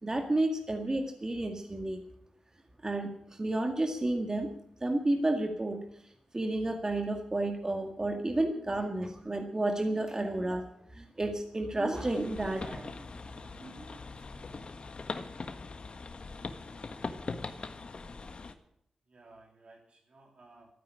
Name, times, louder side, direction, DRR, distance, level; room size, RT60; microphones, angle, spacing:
voice 1, 0.0-2.0 2.8-4.5 4.8-5.8 6.3-12.9 13.6-14.0, right 2 dB, 30° right, 4 dB, 2.0 m, -31 dB
sound 1, 11.9-18.5, left 3 dB, 55° left, 1.4 m, -41 dB
voice 2, 19.1-20.7, right 2 dB, 65° right, 0 dB, 3.4 m, -57 dB
13.5 x 9.4 x 10.0 m, 0.71 s
cardioid pair, 55°, 2 cm